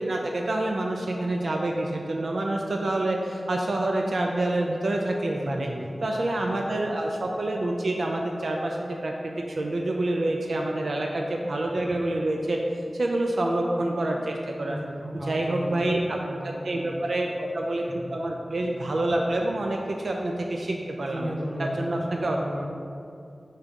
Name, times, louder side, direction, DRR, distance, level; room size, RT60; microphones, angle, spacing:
voice 1, 0.0-5.7 6.0-12.6 12.9-14.8 15.3-17.8 18.1-21.3 21.6-22.4, right 1 dB, 75° right, 1 dB, 0.4 m, -27 dB
voice 2, 5.3-6.0 10.5-10.9 14.6-17.0 17.8-18.1 21.1-22.7, equal, 25° right, -2 dB, 0.9 m, -35 dB
5.6 x 3.6 x 5.1 m, 2.5 s
wide cardioid pair, 95°, 0 cm